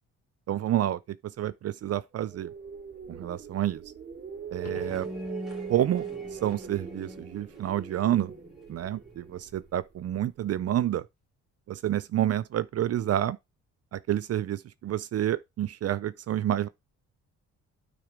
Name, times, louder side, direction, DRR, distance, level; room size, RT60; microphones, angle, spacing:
voice 1, 0.5-2.5 3.1-3.8 4.5-5.1 5.7-8.3 8.7-11.0 11.7-13.4 13.9-16.7, right 12 dB, 55° right, 0.5 m, -29 dB
sound 1, 2.1-10.2, right 7 dB, 35° right, 3.1 m, -41 dB
sound 2, 4.5-5.8 10.6-10.7, left 8 dB, 55° left, 1.2 m, -49 dB
sound 3, 4.7-9.6, equal, ahead, 2.8 m, -43 dB
9.2 x 3.8 x 5.0 m
cardioid pair, 90°, 30 cm